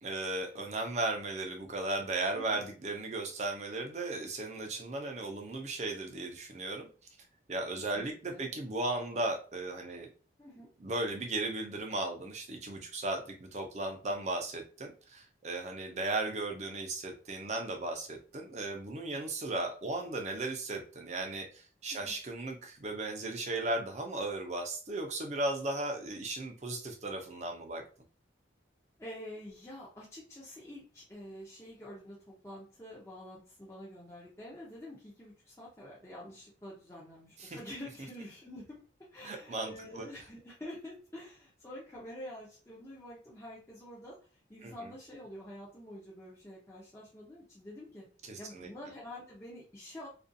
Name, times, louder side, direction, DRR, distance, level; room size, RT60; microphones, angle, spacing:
voice 1, 0.0-6.9 7.5-10.1 10.8-27.8 37.4-37.6 39.2-40.0 44.6-44.9 48.2-48.7, right 2 dB, 35° right, 4 dB, 0.5 m, -36 dB
voice 2, 7.9-8.4 10.4-10.7 21.9-22.2 29.0-38.8 39.1-44.2 44.5-48.1 48.4-50.1, left 1 dB, 15° left, -7 dB, 0.6 m, -47 dB
2.5 x 2.3 x 2.6 m, 0.37 s
head